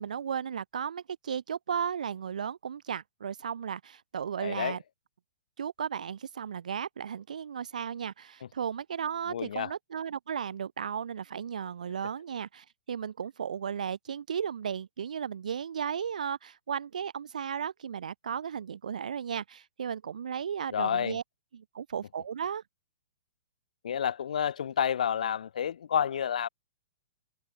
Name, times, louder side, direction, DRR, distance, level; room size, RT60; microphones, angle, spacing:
voice 1, 0.0-4.8 5.6-21.2 21.5-22.6, right 7 dB, 80° right, 3.2 m, -35 dB
voice 2, 4.4-4.8 9.3-9.7 20.7-21.2 23.8-26.5, left 8 dB, 75° left, 0.5 m, -29 dB
hypercardioid pair, 135°, 4 cm